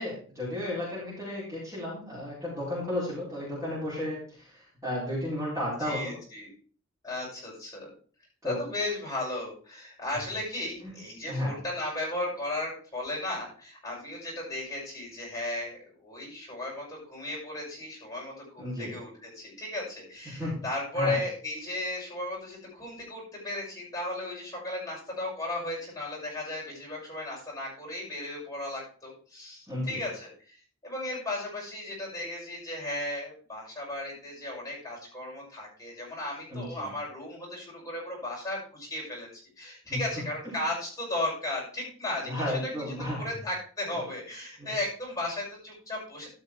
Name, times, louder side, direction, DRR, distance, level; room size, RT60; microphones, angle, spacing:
voice 1, 0.0-6.1 8.4-8.6 10.8-11.0 11.3-11.5 18.6-18.9 20.2-20.6 20.9-21.2 29.7-30.0 36.5-36.9 39.9-40.0 42.2-43.3 43.9-44.0 44.6-44.7, left 1 dB, 15° right, -8 dB, 4.4 m, -33 dB
voice 2, 5.8-6.5 7.0-7.9 8.4-39.3 39.6-46.3, left 1 dB, 15° left, -3 dB, 6.3 m, -35 dB
13.0 x 6.2 x 4.6 m, 0.42 s
head